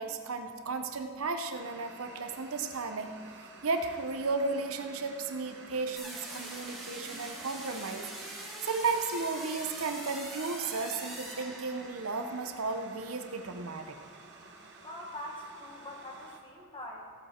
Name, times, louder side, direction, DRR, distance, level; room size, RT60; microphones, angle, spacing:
voice 1, 0.0-3.2 3.6-14.0, right 4 dB, 80° right, 6 dB, 0.8 m, -34 dB
sound 1, 1.5-16.4, right 3 dB, 55° right, 1.1 m, -51 dB
sound 2, 6.0-12.1, right 1 dB, ahead, 1.8 m, -43 dB
voice 2, 14.8-17.0, left 1 dB, 25° left, -1 dB, 1.6 m, -43 dB
15.5 x 8.0 x 4.4 m, 2.2 s
head